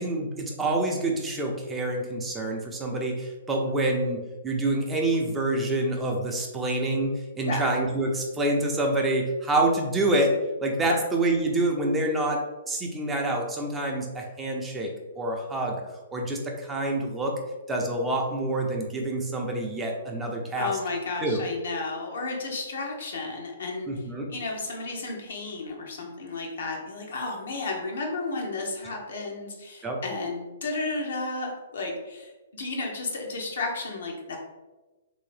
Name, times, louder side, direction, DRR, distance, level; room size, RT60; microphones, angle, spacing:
voice 1, 0.0-10.3 10.6-14.9 15.2-15.8 16.1-17.3 17.7-20.7 21.2-21.4 23.9-24.3 29.8-30.0, right 2 dB, 10° right, 0 dB, 0.6 m, -27 dB
voice 2, 20.6-24.0 24.3-34.4, left 3 dB, 65° left, 1 dB, 0.9 m, -33 dB
3.3 x 2.7 x 3.2 m, 1.1 s
figure-of-eight pair, 125°, 0 cm